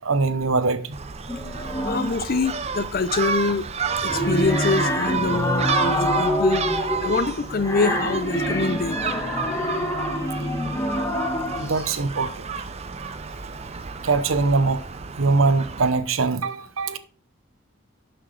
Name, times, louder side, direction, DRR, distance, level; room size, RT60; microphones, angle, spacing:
voice 1, 0.0-1.0 11.6-12.5 14.0-14.8 15.2-17.0, right 3 dB, 85° right, 0.9 m, -22 dB
Gull seagull, 0.9-15.9, right 5 dB, 30° right, 0.6 m, -31 dB
sound 1, 1.3-2.2 3.8-11.9, equal, 15° left, 1.5 m, -26 dB
voice 2, 1.8-3.7 4.0-9.2, left 4 dB, 45° left, 0.5 m, -25 dB
11.5 x 5.9 x 3.3 m
head